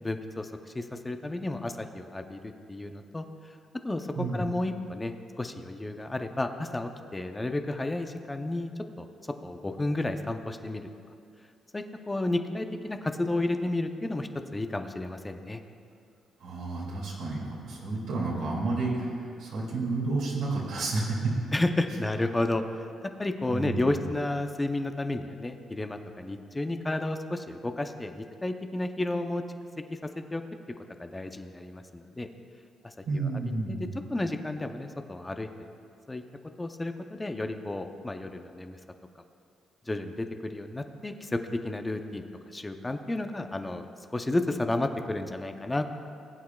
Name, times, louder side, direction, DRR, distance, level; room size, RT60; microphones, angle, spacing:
voice 1, 0.0-2.4 2.7-3.3 3.8-4.1 4.3-8.7 9.0-9.1 9.4-10.9 11.7-15.6 21.5-22.6 23.2-29.4 29.9-30.4 31.0-32.3 32.8-33.3 33.6-35.7 36.1-36.2 36.6-38.8 39.9-45.9, left 2 dB, 15° left, 6 dB, 0.6 m, -32 dB
voice 2, 16.4-21.3 23.5-23.9 33.1-33.9, right 3 dB, 80° right, -5 dB, 2.5 m, -31 dB
19.5 x 8.4 x 2.3 m, 2.4 s
cardioid pair, 90°, 0 cm